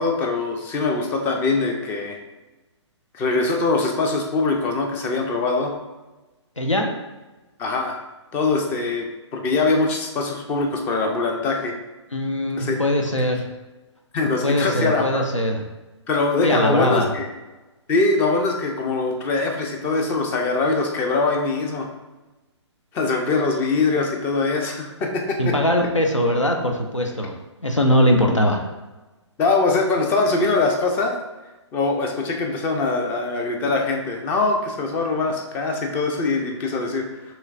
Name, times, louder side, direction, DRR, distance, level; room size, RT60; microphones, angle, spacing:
voice 1, 0.0-2.2 3.1-5.8 7.6-8.0 8.3-11.8 12.6-12.8 14.1-15.3 16.1-17.3 17.9-21.9 22.9-25.6 29.4-31.1 31.7-37.1, left 3 dB, 15° left, 2 dB, 0.4 m, -22 dB
voice 2, 6.6-6.9 12.1-13.4 14.4-15.6 16.4-17.1 25.4-27.3 27.6-28.6, equal, 90° left, 3 dB, 0.8 m, -21 dB
6.1 x 3.1 x 2.4 m, 1.1 s
figure-of-eight pair, 130°, 15 cm